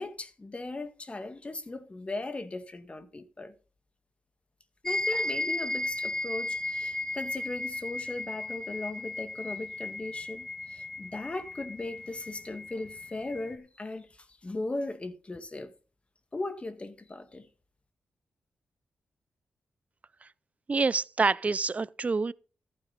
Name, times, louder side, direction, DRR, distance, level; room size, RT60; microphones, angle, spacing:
voice 1, 0.0-3.5 4.8-15.7 16.3-17.5, left 2 dB, 30° left, 1.8 m, -38 dB
sound 1, 4.9-13.5, left 2 dB, 15° left, 2.0 m, -35 dB
voice 2, 20.7-22.3, right 4 dB, 35° right, 0.6 m, -27 dB
14.0 x 9.1 x 4.1 m
cardioid pair, 65°, 4 cm